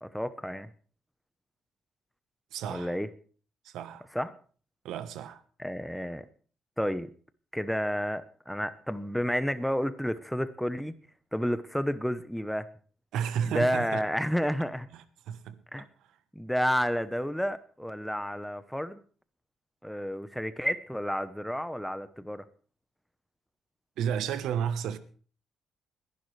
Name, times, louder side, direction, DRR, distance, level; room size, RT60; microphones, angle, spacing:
voice 1, 0.0-0.7 2.7-3.1 4.1-4.3 5.6-6.3 6.8-7.1 7.5-11.0 11.3-12.7 13.5-14.9 15.7-15.9 16.3-19.0 19.8-22.4, equal, ahead, 1.0 m, -31 dB
voice 2, 2.5-2.9 3.6-4.1 4.8-5.4 13.1-14.0 14.9-15.6 24.0-25.0, right 8 dB, 85° right, 1.1 m, -32 dB
21.5 x 11.0 x 3.3 m
cardioid pair, 90°, 0 cm